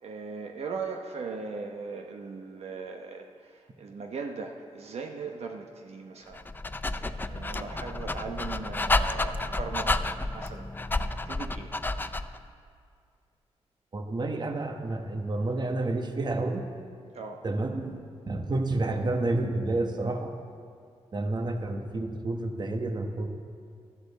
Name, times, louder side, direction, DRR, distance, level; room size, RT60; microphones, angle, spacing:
voice 1, 0.0-6.4 7.0-10.0 10.3-10.7 11.1-11.7 17.1-17.4, right 4 dB, 70° right, 3 dB, 0.9 m, -39 dB
Dog, 6.3-12.4, left 2 dB, 20° left, 0.4 m, -30 dB
voice 2, 13.9-16.6 17.4-20.3 21.1-23.3, right 2 dB, 40° right, 5 dB, 1.1 m, -30 dB
14.0 x 13.5 x 4.1 m, 2.3 s
cardioid pair, 95°, 11 cm